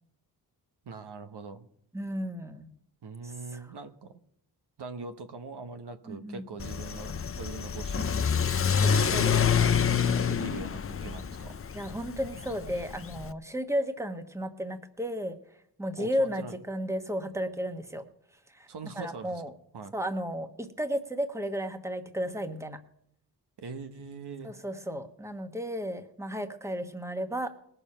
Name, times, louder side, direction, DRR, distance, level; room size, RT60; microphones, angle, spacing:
voice 1, 0.8-1.7 3.0-4.2 4.8-8.3 8.9-11.6 16.0-16.6 18.7-19.4 19.7-19.9 23.6-24.5, right 4 dB, 70° right, 9 dB, 1.1 m, -42 dB
voice 2, 1.9-2.7 3.2-3.6 6.1-6.4 8.8-9.4 11.7-15.4 15.8-18.0 18.5-18.7 18.9-19.5 19.9-22.8 24.4-27.5, equal, 5° right, 8 dB, 1.2 m, -33 dB
Car / Accelerating revving vroom, 6.6-13.3, left 7 dB, 35° left, 0.5 m, -27 dB
19.5 x 6.9 x 5.6 m, 0.70 s
wide cardioid pair, 95°, 41 cm